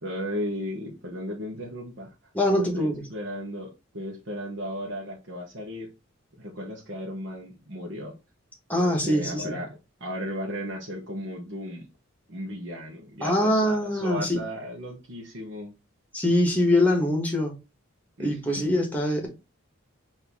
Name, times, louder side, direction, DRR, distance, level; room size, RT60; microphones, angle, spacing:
voice 1, 0.0-2.1 2.5-5.9 6.3-8.1 8.8-11.9 12.3-15.7 18.2-18.3 18.6-18.7, equal, 60° right, 1.0 m, -35 dB
voice 2, 2.3-3.0 8.7-9.6 13.2-14.4 16.1-17.5 18.2-19.3, left 1 dB, 10° left, 1.2 m, -23 dB
4.5 x 2.7 x 3.5 m
head